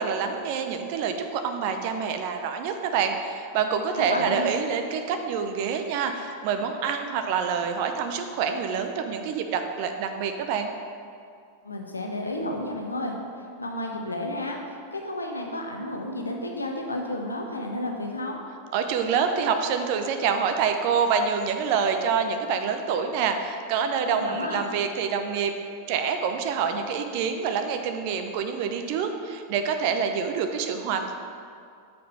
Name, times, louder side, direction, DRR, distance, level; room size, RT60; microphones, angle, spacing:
voice 1, 0.0-10.7 18.7-25.5 25.9-31.1, right 6 dB, 45° right, 6 dB, 0.6 m, -26 dB
voice 2, 4.0-4.5 11.6-13.1 13.6-18.4 24.1-24.6, left 1 dB, 80° left, 2 dB, 0.9 m, -32 dB
6.9 x 5.2 x 5.6 m, 2.3 s
figure-of-eight pair, 90°, 0 cm